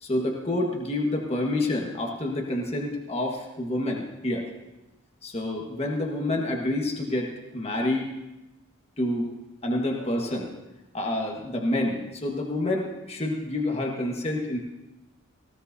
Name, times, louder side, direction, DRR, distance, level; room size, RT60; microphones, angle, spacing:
voice 1, 0.0-4.5 5.2-8.1 9.0-9.3 9.6-10.5 10.9-14.6, left 1 dB, 30° left, 0 dB, 1.5 m, -28 dB
18.0 x 15.5 x 2.7 m, 1.0 s
head